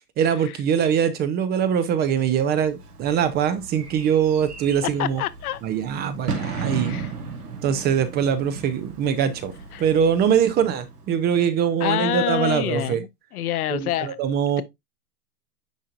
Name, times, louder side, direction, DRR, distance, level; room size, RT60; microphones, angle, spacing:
voice 1, 0.2-5.2 5.6-7.0 7.6-9.5 9.8-13.0 13.7-14.6, right 8 dB, 20° right, 0.6 m, -22 dB
Bird / Fireworks, 2.3-11.5, right 5 dB, 80° right, 2.3 m, -35 dB
voice 2, 4.8-5.6 6.3-7.1 9.7-9.8 10.3-10.4 11.8-14.2, left 14 dB, 70° left, 0.9 m, -27 dB
10.0 x 3.7 x 2.5 m
hypercardioid pair, 120°, 46 cm